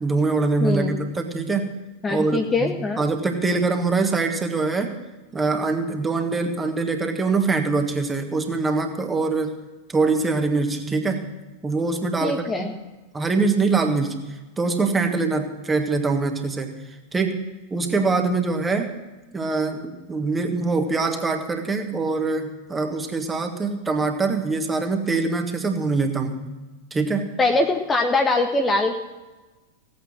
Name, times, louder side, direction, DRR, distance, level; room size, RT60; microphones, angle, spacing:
voice 1, 0.0-1.7 2.1-4.9 5.3-9.6 9.9-11.2 11.6-12.7 13.1-14.3 14.6-17.4 17.7-18.9 19.3-26.5 26.9-27.3, right 3 dB, 15° right, 5 dB, 1.6 m, -24 dB
voice 2, 0.6-1.0 2.0-3.0 12.2-12.7 27.4-29.0, left 2 dB, 15° left, 5 dB, 0.9 m, -22 dB
16.5 x 8.7 x 6.2 m, 1.2 s
figure-of-eight pair, 90°, 0 cm